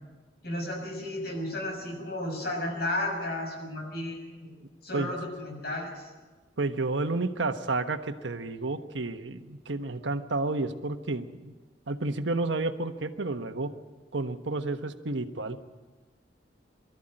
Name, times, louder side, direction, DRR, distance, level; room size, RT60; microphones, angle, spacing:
voice 1, 0.4-4.5 4.8-6.1, left 1 dB, 60° left, 1 dB, 6.8 m, -33 dB
voice 2, 4.6-5.1 6.6-11.5 11.9-13.7 14.1-15.6, right 2 dB, 80° right, 8 dB, 1.2 m, -31 dB
23.0 x 13.5 x 8.9 m, 1.3 s
head